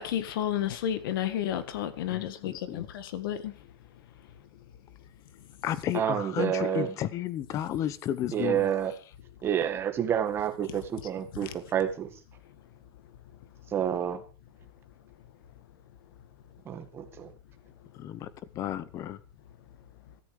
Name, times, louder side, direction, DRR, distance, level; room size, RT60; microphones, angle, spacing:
voice 1, 0.0-3.5 11.4-11.5, left 11 dB, 60° left, 1.8 m, -31 dB
voice 2, 2.1-2.9 5.6-8.7 17.9-18.3 18.5-19.2, left 11 dB, 25° left, 1.0 m, -33 dB
voice 3, 5.9-6.9 8.3-8.9 9.4-12.1 13.7-14.2 16.7-17.3, right 9 dB, 20° right, 1.9 m, -29 dB
16.5 x 13.5 x 5.0 m
supercardioid pair, 165°, 13 cm